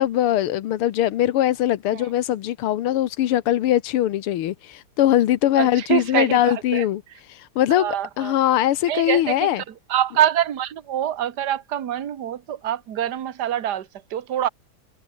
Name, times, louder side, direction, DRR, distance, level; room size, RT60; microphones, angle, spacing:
voice 1, 0.0-9.6, left 13 dB, 90° left, 1.9 m, -21 dB
voice 2, 5.6-6.8 7.8-8.3 8.9-9.4 9.9-14.5, right 11 dB, 55° right, 1.8 m, -25 dB
omnidirectional pair, 2.3 m